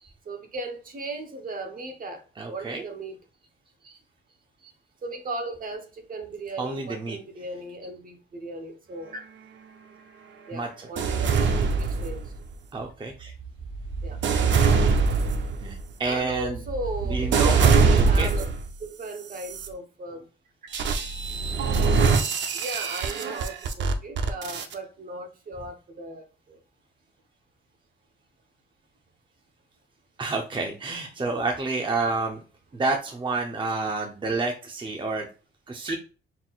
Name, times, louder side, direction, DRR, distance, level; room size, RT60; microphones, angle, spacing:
voice 1, 0.2-3.2 5.0-9.2 10.5-12.2 14.0-14.2 16.0-18.5 18.8-20.2 22.5-26.6 35.9-36.0, right 2 dB, 45° right, 5 dB, 1.0 m, -36 dB
voice 2, 2.4-2.8 3.8-4.0 6.6-7.2 10.5-10.9 12.7-13.3 15.6-16.6 17.1-17.7 18.0-18.3 30.2-32.4 32.7-35.3 35.7-36.0, right 3 dB, 25° right, 2 dB, 0.7 m, -29 dB
sound 1, 11.0-12.5 13.2-18.7 19.3-19.7 20.7-24.7, right 5 dB, 65° right, 0.7 m, -23 dB
4.1 x 3.8 x 2.4 m, 0.34 s
cardioid pair, 90°, 20 cm